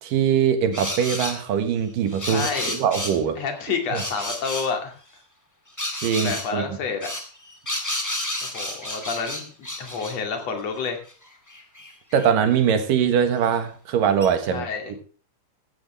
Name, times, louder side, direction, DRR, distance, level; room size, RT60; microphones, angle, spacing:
voice 1, 0.0-3.4 3.9-4.0 6.0-6.7 12.1-14.7, right 8 dB, 75° right, 8 dB, 3.1 m, -22 dB
sound 1, 0.7-1.4 2.1-3.2 3.9-4.7 5.8-6.5 7.0-10.2 10.8-10.9 11.1-12.3 13.5-13.6 14.2-14.3, left 1 dB, 10° left, 1.2 m, -31 dB
voice 2, 2.2-2.8 3.4-5.0 6.2-7.1 8.4-11.0 14.5-14.9, left 5 dB, 50° left, 4 dB, 3.5 m, -29 dB
15.5 x 13.5 x 3.3 m, 0.37 s
omnidirectional pair, 3.9 m